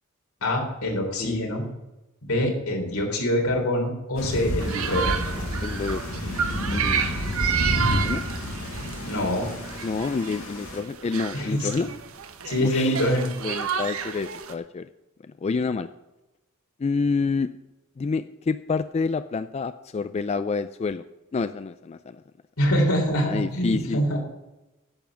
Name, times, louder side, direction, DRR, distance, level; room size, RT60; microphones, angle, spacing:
voice 1, 0.4-1.6 2.2-5.1 9.0-9.5 11.3-11.9 12.5-13.3 22.6-24.2, equal, 85° left, 1 dB, 3.5 m, -25 dB
Thunder / Rain, 4.2-10.8, left 1 dB, 70° left, 2.5 m, -30 dB
sound 1, 4.6-14.5, right 7 dB, 75° right, 1.1 m, -31 dB
voice 2, 5.6-6.0 6.7-7.0 7.8-8.2 9.8-11.9 12.6-13.0 13.4-14.9 15.4-15.9 16.8-17.5 18.0-21.0 21.3-22.2 23.3-24.0, left 4 dB, 30° left, 12 dB, 0.3 m, -28 dB
10.5 x 7.1 x 7.2 m, 1.0 s
head